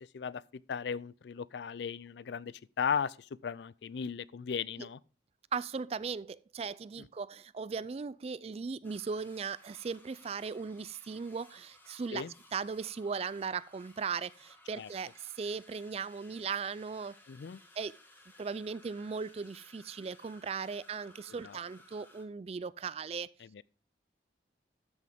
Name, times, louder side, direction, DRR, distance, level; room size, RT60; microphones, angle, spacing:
voice 1, 0.1-5.0 12.1-12.3 14.8-14.9 17.3-17.6 21.4-21.6 23.5-23.6, left 6 dB, 70° left, 0.4 m, -36 dB
voice 2, 5.5-12.2 12.5-17.2 17.8-17.9 18.4-23.3, right 5 dB, 35° right, 0.3 m, -38 dB
sound 1, 8.8-22.2, left 2 dB, 10° left, 1.3 m, -60 dB
13.0 x 6.2 x 3.5 m
head